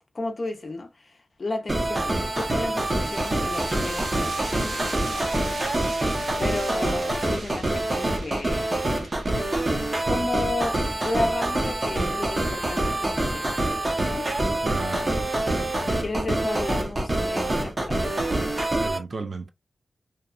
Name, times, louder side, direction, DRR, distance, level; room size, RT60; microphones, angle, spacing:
voice 1, 0.1-1.1 1.4-6.0 6.4-8.9 10.0-13.8 14.0-14.3 15.9-18.4, left 2 dB, 45° left, 0.6 m, -33 dB
sound 1, 1.7-19.0, right 1 dB, 30° right, 0.7 m, -26 dB
sound 2, 2.1-13.4, right 3 dB, 85° right, 0.8 m, -42 dB
voice 2, 14.6-15.1 15.4-16.0 18.8-19.5, right 4 dB, 55° right, 0.3 m, -35 dB
2.8 x 2.2 x 2.3 m
wide cardioid pair, 105°, 0 cm